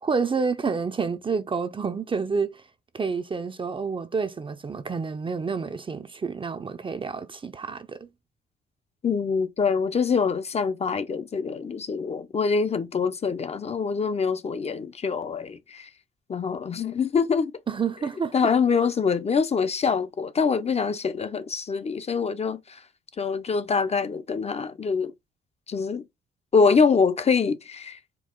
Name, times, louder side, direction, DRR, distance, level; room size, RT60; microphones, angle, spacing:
voice 1, 0.0-2.6 2.9-8.1 17.7-18.5, right 5 dB, 25° right, 0.5 m, -29 dB
voice 2, 9.0-15.9 16.3-17.5 18.3-22.8 23.2-25.1 25.7-26.0 26.5-28.0, left 5 dB, 30° left, 0.5 m, -24 dB
4.5 x 2.3 x 3.6 m
cardioid pair, 90°, 20 cm